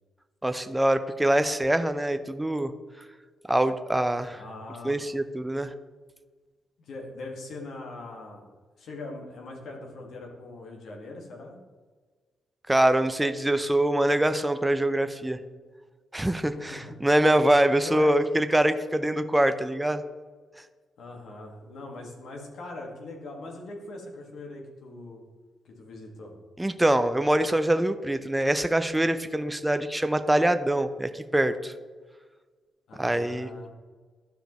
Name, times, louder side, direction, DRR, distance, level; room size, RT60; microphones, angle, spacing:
voice 1, 0.4-2.7 3.5-4.4 4.8-5.7 12.7-15.4 16.1-20.0 26.6-31.7 33.0-33.5, right 1 dB, 10° right, 9 dB, 0.6 m, -24 dB
voice 2, 4.3-4.9 6.8-8.4 8.8-11.5 16.5-16.9 17.8-18.1 21.0-25.2 25.6-26.3 32.9-33.7, left 2 dB, 70° left, 0 dB, 1.7 m, -41 dB
12.5 x 4.9 x 3.1 m, 1.4 s
hypercardioid pair, 45°, 0 cm